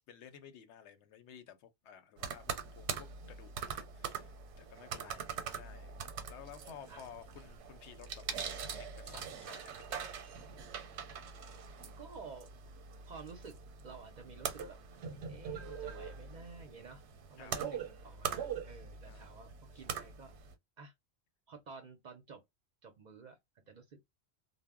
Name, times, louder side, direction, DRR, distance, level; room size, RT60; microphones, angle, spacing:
voice 1, 0.0-6.0 6.3-10.2 17.4-17.6 19.1-19.2, left 8 dB, 85° left, 0.9 m, -54 dB
sound 1, 2.2-20.5, right 7 dB, 90° right, 0.9 m, -43 dB
voice 2, 12.0-12.5 13.1-13.6 13.8-14.8 15.3-17.0 17.3-20.3 20.8-20.9 21.5-22.4 22.8-24.0, right 5 dB, 55° right, 0.5 m, -51 dB
2.0 x 2.0 x 3.4 m
omnidirectional pair, 1.1 m